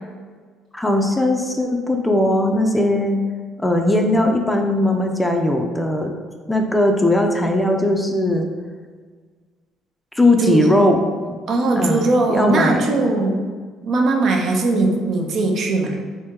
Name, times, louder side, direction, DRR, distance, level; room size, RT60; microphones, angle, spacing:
voice 1, 0.7-3.2 3.6-6.1 6.5-8.5 10.1-11.1 11.8-13.1, left 1 dB, 10° left, 3 dB, 0.4 m, -19 dB
voice 2, 10.4-10.7 11.5-13.5 13.8-16.0, right 2 dB, 60° right, 2 dB, 0.5 m, -19 dB
2.8 x 2.7 x 3.5 m, 1.5 s
supercardioid pair, 85°, 0 cm